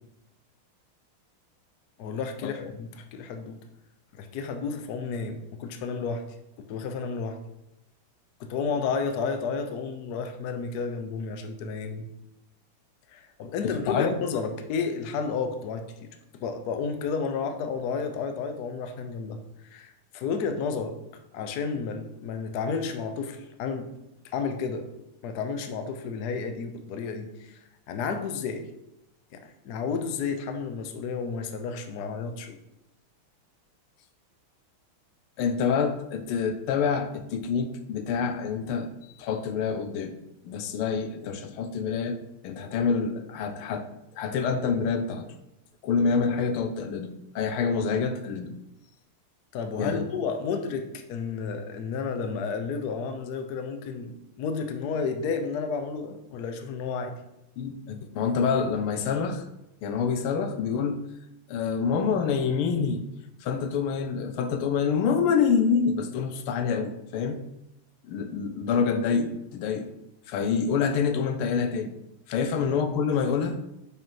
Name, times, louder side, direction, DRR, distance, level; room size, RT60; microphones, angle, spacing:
voice 1, 2.0-3.6 4.1-6.2 6.6-7.4 8.4-12.1 13.1-21.0 21.3-23.9 24.2-24.9 25.2-27.6 27.9-28.7 29.3-32.6 49.5-57.2, left 5 dB, 65° left, 7 dB, 1.0 m, -32 dB
voice 2, 13.6-14.2 35.4-38.9 39.2-40.2 40.4-43.9 44.1-45.3 45.8-48.6 49.8-50.1 57.6-59.4 59.8-61.0 61.5-63.0 63.4-67.4 68.0-69.9 70.3-71.9 72.3-73.6, left 6 dB, 85° left, 8 dB, 1.6 m, -27 dB
5.6 x 5.2 x 4.6 m, 0.88 s
omnidirectional pair, 2.4 m